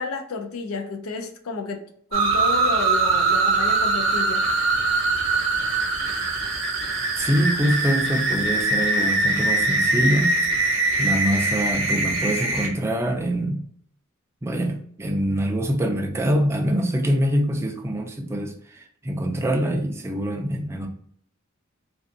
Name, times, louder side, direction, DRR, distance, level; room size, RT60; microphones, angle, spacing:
voice 1, 0.0-1.9 2.1-4.5, left 4 dB, 85° left, 0.5 m, -31 dB
sound 1, 2.1-12.7, right 3 dB, 65° right, 0.7 m, -22 dB
voice 2, 7.2-10.4 11.0-13.6 14.4-20.9, equal, 10° right, 0.3 m, -24 dB
2.4 x 2.4 x 2.5 m
head